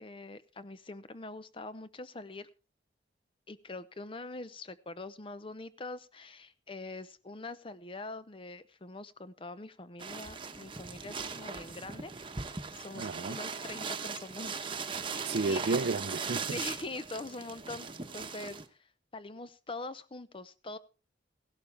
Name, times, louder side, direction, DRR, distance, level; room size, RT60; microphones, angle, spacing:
voice 1, 0.0-2.5 3.5-12.1 12.4-14.7 15.5-15.6 16.5-20.8, left 2 dB, 30° left, 0.7 m, -44 dB
sound 1, 10.0-18.7, right 5 dB, 30° right, 1.1 m, -39 dB
voice 2, 13.0-13.4 15.2-16.6, right 3 dB, 60° right, 0.5 m, -32 dB
16.5 x 12.0 x 3.4 m
head